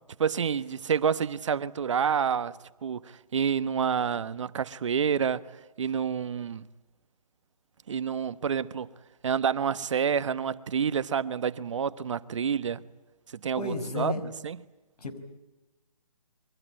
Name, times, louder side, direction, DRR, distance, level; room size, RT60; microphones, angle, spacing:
voice 1, 0.2-2.6 2.8-5.4 5.8-6.7 7.9-8.9 9.2-12.8 13.4-14.1 14.4-14.6, right 7 dB, 50° right, 1.1 m, -28 dB
voice 2, 13.6-14.3 15.0-15.2, left 3 dB, 80° left, 5.7 m, -32 dB
28.0 x 23.5 x 8.9 m
hypercardioid pair, 160°, 20 cm